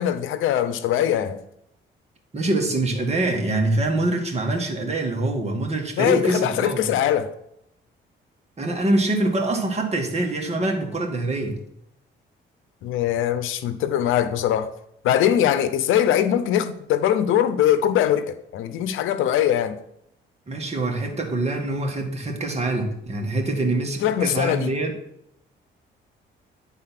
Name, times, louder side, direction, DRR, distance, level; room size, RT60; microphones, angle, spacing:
voice 1, 0.0-1.4 6.0-7.3 12.8-14.7 15.0-19.8 24.0-24.7, left 10 dB, 85° left, 0.7 m, -21 dB
voice 2, 2.3-6.9 8.6-11.6 20.5-25.0, right 2 dB, 35° right, 1.9 m, -24 dB
9.8 x 4.1 x 5.8 m
cardioid pair, 90°, 20 cm